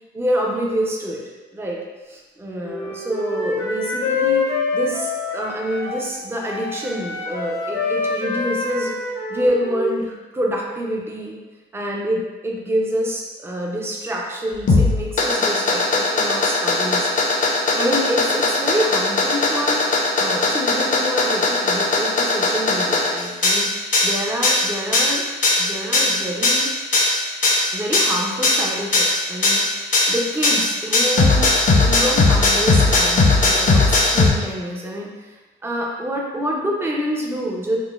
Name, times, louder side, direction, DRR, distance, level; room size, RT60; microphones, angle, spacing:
voice 1, 0.1-1.2 1.5-1.8 2.1-4.5 4.7-8.9 9.3-11.4 11.7-17.1 17.4-19.8 20.2-23.7 24.0-25.2 25.6-26.7 27.7-35.3 35.6-37.8, equal, 10° right, -2 dB, 0.5 m, -26 dB
Wind instrument woodwind instrument, 2.6-6.1 6.4-9.9, left 4 dB, 90° left, 0.5 m, -26 dB
sound 1, 14.5-34.3, left 2 dB, 40° left, 0.6 m, -18 dB
3.7 x 2.1 x 2.4 m, 1.2 s
cardioid pair, 90°, 20 cm